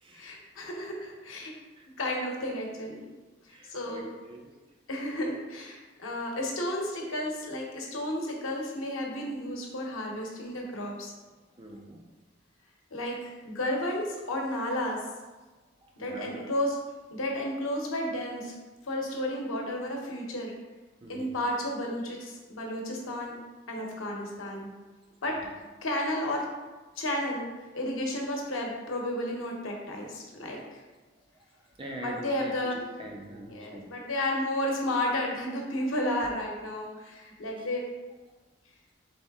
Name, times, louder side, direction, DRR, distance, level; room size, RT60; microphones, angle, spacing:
voice 1, 0.1-1.5 2.0-3.1 3.7-4.1 4.9-11.1 12.9-15.0 16.0-16.8 17.1-18.6 18.8-20.5 21.1-23.4 23.7-24.7 25.2-25.4 25.8-26.5 27.0-27.5 27.7-30.8 32.0-32.8 33.4-37.8, left 1 dB, 90° left, 0 dB, 0.9 m, -32 dB
voice 2, 3.5-4.4 11.6-12.0 16.0-16.4 21.0-21.3 31.8-32.5 32.8-33.8, right 1 dB, 25° right, 0 dB, 0.5 m, -43 dB
4.2 x 3.2 x 3.5 m, 1.2 s
head